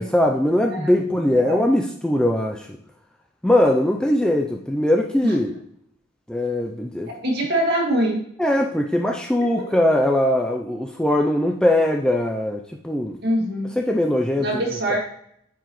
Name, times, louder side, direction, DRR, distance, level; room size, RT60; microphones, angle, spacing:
voice 1, 0.0-2.7 3.4-5.5 6.3-7.1 8.4-13.2 13.8-14.5, left 1 dB, 5° left, 2 dB, 0.3 m, -21 dB
voice 2, 7.2-8.2 13.2-13.7 14.4-15.0, right 1 dB, 50° right, -1 dB, 1.9 m, -23 dB
9.0 x 4.8 x 3.0 m, 0.70 s
head